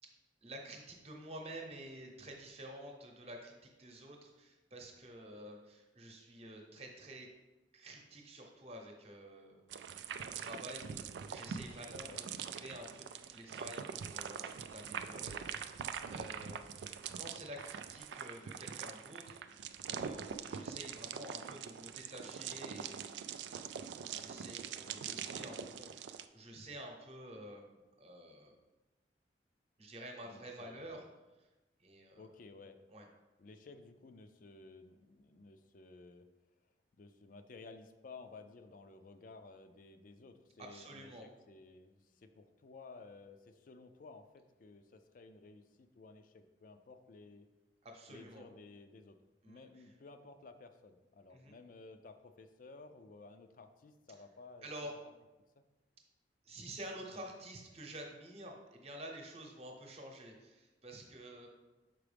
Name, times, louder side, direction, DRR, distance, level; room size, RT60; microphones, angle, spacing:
voice 1, 0.4-7.3 7.7-19.4 19.8-23.2 23.5-28.5 29.8-31.0 31.8-32.3 32.9-33.0 40.6-41.3 47.8-48.4 49.4-49.8 51.3-51.5 54.6-54.9 56.4-61.5, right 1 dB, 35° right, 1 dB, 0.9 m, -50 dB
sound 1, 9.7-26.2, right 7 dB, 85° right, 0.3 m, -44 dB
voice 2, 24.8-25.2 30.2-31.0 32.2-32.8 33.4-36.3 36.6-47.5 48.1-49.2 49.4-55.0 55.6-55.7, left 3 dB, 50° left, 9 dB, 0.4 m, -55 dB
6.0 x 4.7 x 3.4 m, 1.1 s
head